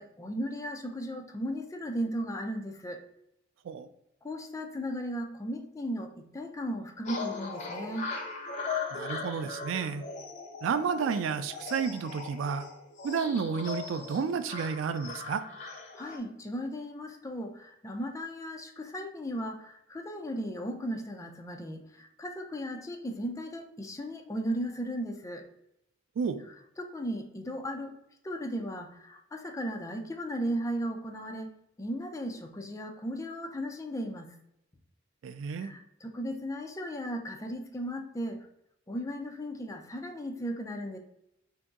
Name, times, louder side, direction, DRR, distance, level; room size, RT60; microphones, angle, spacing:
voice 1, 0.0-3.0 4.2-8.1 16.0-25.5 26.8-27.9 28.2-31.5 31.8-34.3 35.6-38.5 38.9-41.0, equal, 15° left, 4 dB, 0.4 m, -36 dB
sound 1, 7.1-16.2, left 4 dB, 40° left, 0.8 m, -39 dB
voice 2, 8.9-10.0 10.6-12.7 13.0-15.4 26.2-26.4 35.2-35.7, right 6 dB, 70° right, 11 dB, 0.3 m, -31 dB
2.9 x 2.7 x 3.5 m, 0.81 s
head